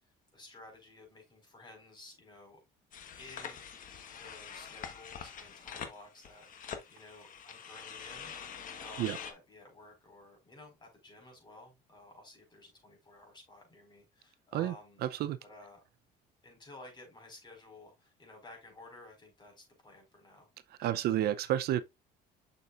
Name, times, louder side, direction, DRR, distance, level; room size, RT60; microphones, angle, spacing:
voice 1, 0.3-2.6 3.2-3.6 4.1-15.1 15.4-15.8 16.4-20.5 20.8-21.0, left 2 dB, 25° left, 4.7 m, -54 dB
sound 1, 2.9-9.3, left 7 dB, 50° left, 1.2 m, -45 dB
voice 2, 15.0-15.4 20.8-21.8, right 12 dB, 70° right, 0.5 m, -30 dB
6.9 x 6.4 x 2.4 m
cardioid pair, 110°, 17 cm